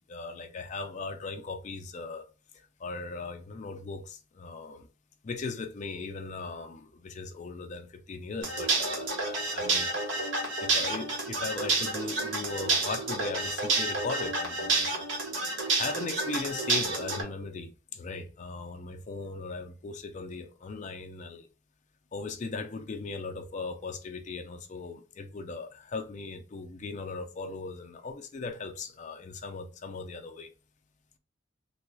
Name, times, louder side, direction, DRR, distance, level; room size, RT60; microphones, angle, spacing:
voice 1, 0.0-2.3 2.5-4.9 5.2-10.2 10.6-15.1 15.8-21.5 22.1-30.5, left 4 dB, 40° left, 0.4 m, -38 dB
sound 1, 8.4-17.2, right 3 dB, 70° right, 1.1 m, -29 dB
3.4 x 2.2 x 3.1 m
head